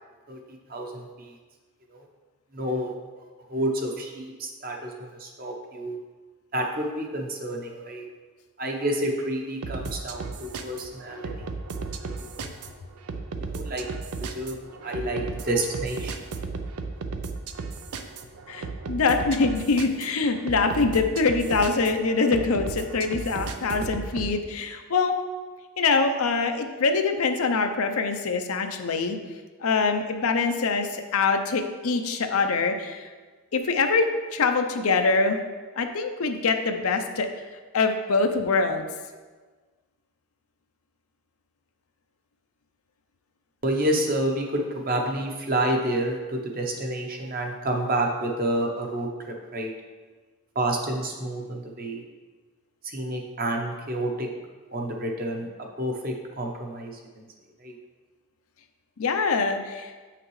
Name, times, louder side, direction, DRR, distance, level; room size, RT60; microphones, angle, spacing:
voice 1, 0.3-1.3 1.9-2.0 2.5-2.9 3.5-6.0 6.5-8.1 8.6-11.3 12.0-12.8 13.5-13.9 14.3-16.1 43.6-49.7 50.5-52.0 52.8-54.3 54.7-55.5 55.8-57.2 57.6-57.7, right 1 dB, 40° right, 1 dB, 0.9 m, -29 dB
sound 1, 9.6-24.3, right 4 dB, 90° right, 0.5 m, -35 dB
voice 2, 18.5-25.1 25.8-29.2 29.6-33.1 33.5-34.1 34.3-35.4 35.8-37.3 37.7-38.9 59.0-59.9, left 4 dB, 75° left, 6 dB, 0.6 m, -24 dB
7.8 x 5.8 x 3.2 m, 1.4 s
head